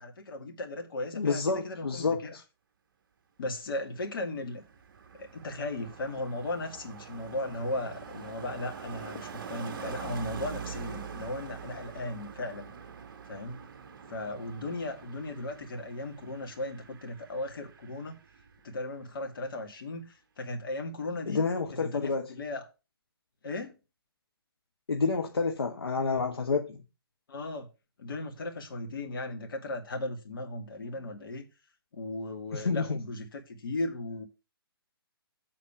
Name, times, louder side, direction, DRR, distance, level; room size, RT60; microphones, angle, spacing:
voice 1, 0.0-2.4 3.4-4.6 5.2-12.7 13.3-13.7 14.1-18.2 18.6-21.5 21.8-22.6 23.4-23.8 27.3-27.7 28.0-31.4 31.9-34.3, left 2 dB, 60° left, 2.4 m, -36 dB
voice 2, 1.1-2.4 21.3-22.3 24.9-26.8 32.5-33.0, left 4 dB, 75° left, 1.2 m, -29 dB
Car passing by, 4.0-18.8 19.0-19.3, right 7 dB, 55° right, 1.0 m, -44 dB
7.6 x 4.2 x 6.9 m
figure-of-eight pair, 135°, 13 cm